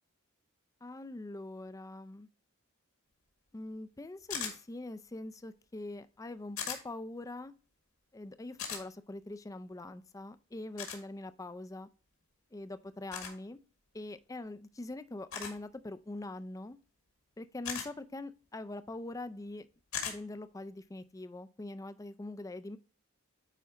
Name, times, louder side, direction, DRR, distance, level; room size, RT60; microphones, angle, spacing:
voice 1, 0.8-2.3 3.5-7.5 8.1-11.9 12.5-13.6 13.9-16.8 17.4-19.7 20.1-22.8, left 2 dB, 15° left, 13 dB, 0.4 m, -43 dB
sound 1, 4.3-4.6 6.6-6.8 8.6-8.8 10.8-11.0 13.1-13.3 15.3-15.6 17.6-17.9 19.9-20.2, left 7 dB, 75° left, 2.0 m, -37 dB
9.3 x 4.1 x 3.6 m, 0.39 s
head